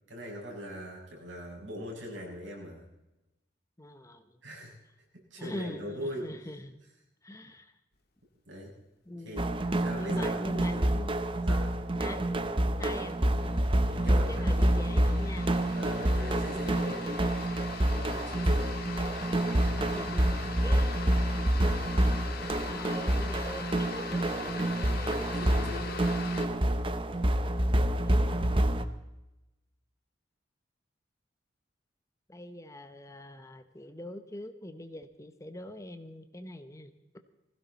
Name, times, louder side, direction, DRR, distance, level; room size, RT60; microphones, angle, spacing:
voice 1, 0.1-2.9 4.4-4.8 5.3-6.3 8.5-8.7 9.1-9.4 9.8-10.8 11.4-11.7 14.0-14.4 15.7-17.0 17.9-18.8 20.4-20.6 22.0-22.3 25.3-26.0 27.0-27.2, equal, 80° right, -3 dB, 6.7 m, -41 dB
voice 2, 3.8-4.4 5.4-6.8 7.2-7.7 9.1-9.7 10.0-11.1 12.0-12.2 12.8-13.2 14.0-15.5 16.5-17.2 19.8-20.3 20.6-21.9 22.5-25.3 27.3-28.7 32.3-37.2, left 1 dB, 15° left, 9 dB, 0.9 m, -44 dB
sound 1, 9.4-28.8, right 1 dB, 30° right, 0.8 m, -28 dB
sound 2, 12.3-12.4 12.8-26.5, left 5 dB, 55° left, 1.9 m, -42 dB
20.0 x 16.0 x 4.1 m, 0.98 s
head